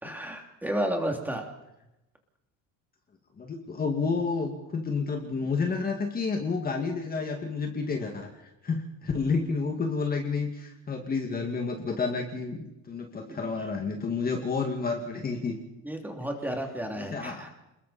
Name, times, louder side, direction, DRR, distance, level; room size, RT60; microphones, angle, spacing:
voice 1, 0.0-1.4 13.3-13.4 15.8-17.5, right 1 dB, 5° right, 2 dB, 3.0 m, -32 dB
voice 2, 3.4-8.3 8.6-15.6 17.0-17.5, left 4 dB, 25° left, 3 dB, 2.2 m, -30 dB
28.0 x 21.5 x 4.4 m, 0.91 s
cardioid pair, 145°, 34 cm